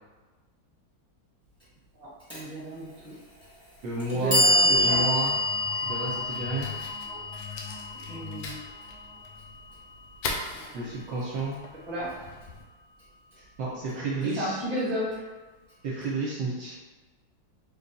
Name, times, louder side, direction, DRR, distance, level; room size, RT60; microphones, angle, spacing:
voice 1, 2.0-3.1 4.1-5.0 8.1-8.6 11.9-12.1 14.3-15.2, equal, 20° right, -7 dB, 1.3 m, -33 dB
Clock, 2.3-2.4 3.4-3.5 4.0-10.0, left 1 dB, 5° left, 0.9 m, -27 dB
voice 2, 3.8-5.4 5.8-6.7 10.7-11.6 13.6-14.6 15.8-16.7, right 2 dB, 70° right, -6 dB, 1.3 m, -31 dB
Fire, 3.9-12.7, left 3 dB, 80° left, 1.4 m, -42 dB
sound 1, 4.7-10.2, left 3 dB, 55° left, 0.8 m, -42 dB
4.1 x 2.3 x 3.9 m, 1.2 s
omnidirectional pair, 2.3 m